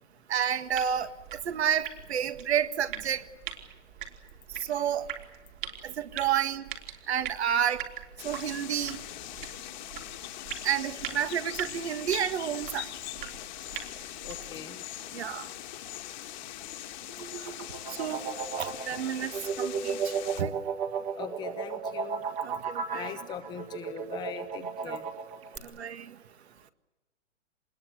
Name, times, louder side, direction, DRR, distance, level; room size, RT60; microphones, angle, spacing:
voice 1, 0.3-3.3 4.7-5.1 5.8-6.6 7.1-7.8 8.2-9.0 10.6-12.9 15.1-15.5 17.9-18.2 18.6-20.5 22.4-23.1 24.8-25.0 25.6-26.2, right 9 dB, 55° right, 11 dB, 1.9 m, -30 dB
sound 1, 0.7-14.6, right 10 dB, 40° right, 3.7 m, -43 dB
sound 2, 8.2-20.4, left 13 dB, 35° left, 1.7 m, -41 dB
voice 2, 14.2-14.8 19.0-19.1 21.2-22.2 22.9-25.1, left 8 dB, 10° left, 8 dB, 0.9 m, -41 dB
sound 3, 17.1-25.6, right 6 dB, 15° right, 1.7 m, -34 dB
27.0 x 21.0 x 8.1 m, 1.0 s
hypercardioid pair, 155°, 38 cm